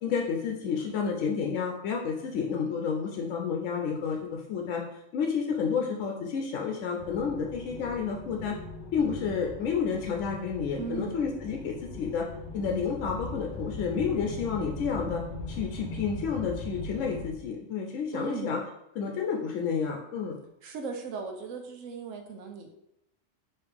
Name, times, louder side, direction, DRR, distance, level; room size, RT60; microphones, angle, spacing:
voice 1, 0.0-8.6 8.9-12.3 12.5-15.2 15.5-18.6 19.0-20.4, left 6 dB, 75° left, 1 dB, 0.9 m, -30 dB
sound 1, 7.0-17.3, left 2 dB, 45° left, 0.6 m, -40 dB
voice 2, 10.8-11.3 18.1-18.5 20.6-22.7, right 5 dB, 80° right, 4 dB, 1.1 m, -37 dB
4.8 x 3.1 x 3.4 m, 0.81 s
omnidirectional pair, 1.3 m